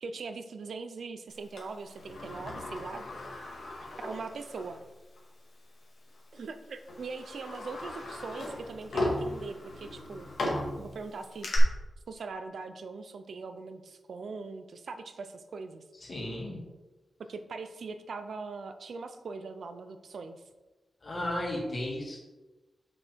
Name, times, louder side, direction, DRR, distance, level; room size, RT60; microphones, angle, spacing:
voice 1, 0.0-3.1 4.0-4.8 6.3-10.3 10.8-11.5 12.1-15.8 17.2-20.4, right 4 dB, 75° right, 8 dB, 0.6 m, -41 dB
Sliding door, 1.6-4.8 5.2-5.3 6.2-6.4 6.9-11.6, left 1 dB, 80° left, 2.0 m, -37 dB
voice 2, 16.1-16.6 21.0-22.2, left 1 dB, 45° left, -3 dB, 2.7 m, -34 dB
6.3 x 6.3 x 4.6 m, 1.1 s
wide cardioid pair, 95°, 0 cm